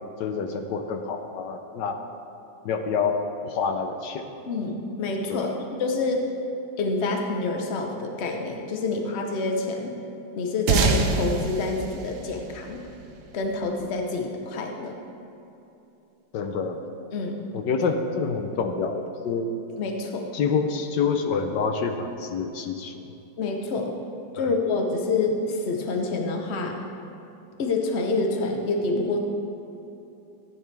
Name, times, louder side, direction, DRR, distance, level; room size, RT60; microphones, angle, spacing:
voice 1, 0.2-2.0 2.6-4.3 5.3-5.6 16.3-16.8 17.5-19.5 20.3-22.9 24.4-24.5, left 5 dB, 80° left, 5 dB, 1.3 m, -27 dB
voice 2, 4.5-5.5 5.8-6.3 6.8-9.9 10.4-12.8 13.3-15.0 17.1-17.3 19.8-20.3 23.4-23.9 24.3-26.8 27.6-29.2, left 3 dB, 45° left, 3 dB, 1.1 m, -27 dB
sound 1, 10.7-13.5, right 4 dB, 70° right, 1.3 m, -25 dB
14.0 x 9.6 x 3.4 m, 2.9 s
omnidirectional pair, 1.9 m